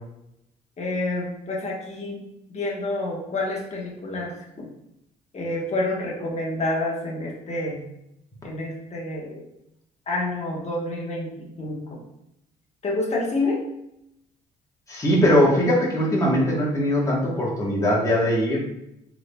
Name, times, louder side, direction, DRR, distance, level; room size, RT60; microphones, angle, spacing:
voice 1, 0.8-4.7 5.3-7.8 8.4-9.4 10.1-12.0 12.8-13.6, left 2 dB, 40° left, -3 dB, 1.1 m, -28 dB
voice 2, 14.9-18.6, equal, 20° left, -4 dB, 1.2 m, -20 dB
3.7 x 3.2 x 2.2 m, 0.82 s
supercardioid pair, 80°, 17 cm